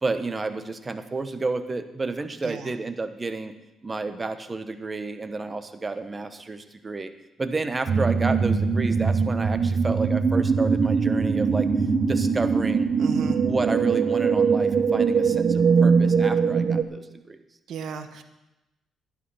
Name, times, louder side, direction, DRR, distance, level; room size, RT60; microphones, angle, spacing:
voice 1, 0.0-3.5 3.8-7.1 7.4-11.7 12.1-12.9 13.4-17.4, right 3 dB, 25° right, 9 dB, 1.1 m, -31 dB
voice 2, 2.4-2.7 13.0-13.4 17.7-18.2, right 7 dB, 70° right, 8 dB, 1.2 m, -35 dB
sound 1, 7.9-16.8, right 5 dB, 50° right, 1.0 m, -22 dB
11.5 x 11.5 x 5.6 m, 0.97 s
cardioid pair, 90°, 0 cm